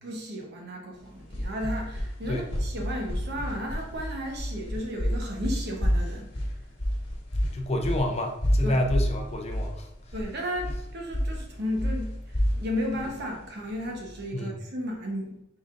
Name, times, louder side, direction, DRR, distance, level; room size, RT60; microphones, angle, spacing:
voice 1, 0.0-6.3 8.6-8.8 10.1-12.1 12.5-15.4, equal, 60° right, 1 dB, 0.9 m, -34 dB
sound 1, 1.0-14.2, equal, 60° left, 1.7 m, -30 dB
voice 2, 7.5-9.9 14.3-14.5, left 1 dB, 35° left, 3 dB, 0.5 m, -28 dB
5.3 x 3.7 x 2.5 m, 0.80 s
head